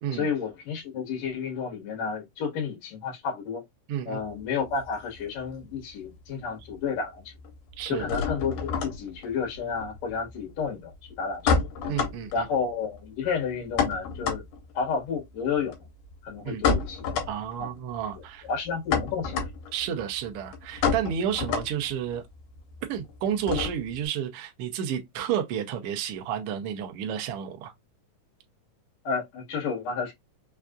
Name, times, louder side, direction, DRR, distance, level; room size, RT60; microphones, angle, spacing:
voice 1, 0.1-3.6 4.1-7.2 7.9-11.7 12.3-14.4 14.7-15.7 16.2-17.1 17.6-17.7 18.5-19.5 29.0-30.1, left 5 dB, 65° left, 2.6 m, -31 dB
voice 2, 3.9-4.2 7.8-8.0 11.9-12.3 16.4-16.6 17.3-18.5 19.7-22.2 22.9-27.7, right 9 dB, 75° right, 1.3 m, -31 dB
sound 1, 4.2-5.8 6.1-6.8 7.0-24.1, left 5 dB, 80° left, 2.6 m, -31 dB
5.5 x 2.4 x 2.4 m
omnidirectional pair, 3.6 m